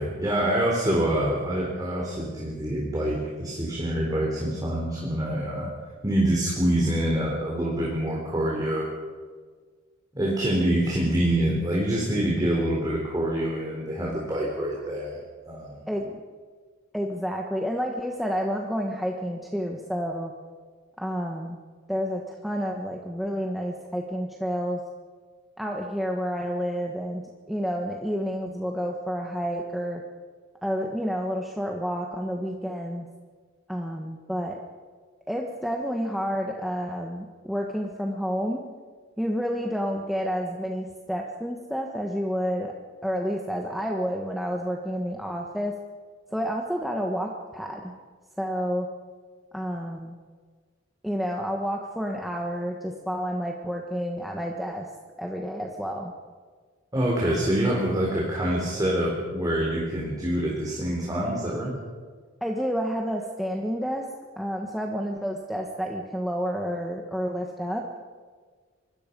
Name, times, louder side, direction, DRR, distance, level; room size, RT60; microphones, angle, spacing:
voice 1, 0.0-5.7 6.0-8.9 10.1-15.2 15.5-15.8 56.9-61.7, right 1 dB, 20° right, -3 dB, 4.0 m, -26 dB
voice 2, 16.9-20.3 21.0-21.6 21.9-24.8 25.6-27.2 27.5-30.0 30.6-33.1 33.7-34.6 35.3-38.6 39.2-42.7 43.0-45.7 46.3-47.9 48.4-48.9 49.5-50.2 51.0-54.9 55.2-56.1 62.4-64.1 64.4-67.8, equal, ahead, 0 dB, 1.5 m, -29 dB
25.5 x 21.5 x 5.5 m, 1.5 s
head